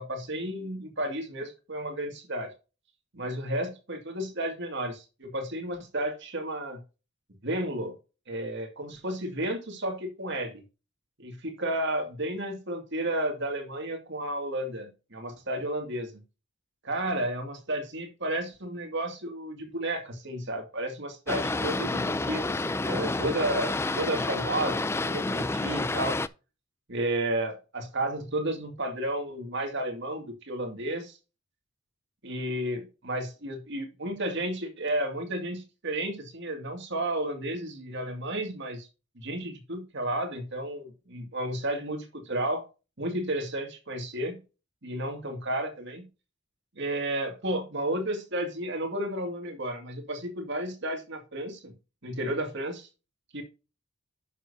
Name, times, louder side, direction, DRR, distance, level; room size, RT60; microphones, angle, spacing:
voice 1, 0.0-2.5 3.1-6.8 7.4-7.9 8.3-10.6 11.2-16.1 16.8-26.2 26.9-31.2 32.2-38.9 39.2-42.6 43.0-44.4 44.8-46.1 46.8-51.7 52.0-52.9 53.3-53.4, right 1 dB, 55° right, 4 dB, 2.2 m, -32 dB
Boat Water vehicle, 21.3-26.3, left 2 dB, 10° left, 0.3 m, -29 dB
11.0 x 6.5 x 2.7 m, 0.31 s
head